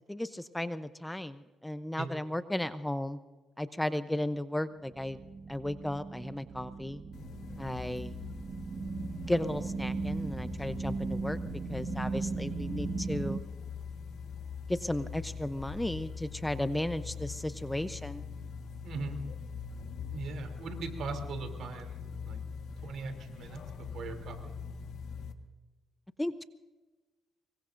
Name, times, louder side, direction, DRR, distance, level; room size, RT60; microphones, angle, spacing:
voice 1, 0.1-3.2 3.6-5.2 5.5-7.0 7.6-8.2 9.3-11.4 11.7-13.4 14.7-18.2 26.2-26.4, left 1 dB, 10° left, 12 dB, 0.7 m, -34 dB
sound 1, 4.9-13.4, right 4 dB, 45° right, 1.4 m, -38 dB
sound 2, 7.1-25.3, left 6 dB, 75° left, 1.5 m, -42 dB
voice 2, 18.8-19.2 20.1-22.4 22.8-23.6 23.9-24.5, right 4 dB, 70° right, 5 dB, 3.1 m, -40 dB
24.5 x 22.5 x 2.6 m, 1.2 s
cardioid pair, 90°, 0 cm